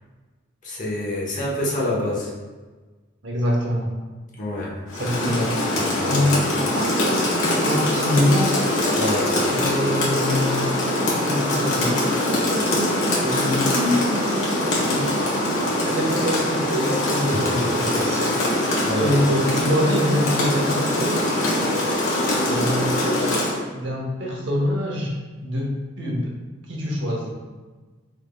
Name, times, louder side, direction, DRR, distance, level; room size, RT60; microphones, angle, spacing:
voice 1, 0.6-2.3 4.4-4.7 5.2-6.4 9.0-9.5 18.8-19.2, left 1 dB, 40° left, -5 dB, 1.0 m, -27 dB
voice 2, 3.2-3.9 4.9-5.5 6.1-6.3 6.7-9.0 9.5-15.5 15.8-18.4 18.9-21.3 22.5-23.3 23.7-25.1 25.4-26.3 26.7-27.4, left 1 dB, 60° right, -1 dB, 0.8 m, -25 dB
Rain, 4.9-23.6, left 1 dB, 80° left, 1.2 m, -23 dB
4.8 x 3.5 x 2.3 m, 1.3 s
head